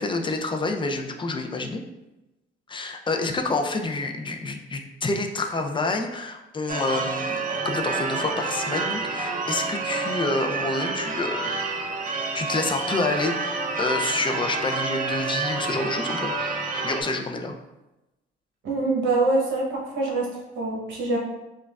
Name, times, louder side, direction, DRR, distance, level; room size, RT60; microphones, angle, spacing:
voice 1, 0.0-1.8 2.7-11.6 12.3-16.3 16.8-17.5, left 3 dB, 25° left, 4 dB, 0.4 m, -28 dB
Church bell / Car / Alarm, 6.7-17.0, right 3 dB, 45° right, 0.5 m, -28 dB
voice 2, 18.6-20.3 20.5-21.2, right 2 dB, 75° right, -3 dB, 1.0 m, -24 dB
5.1 x 2.3 x 2.3 m, 0.99 s
cardioid pair, 90°, 20 cm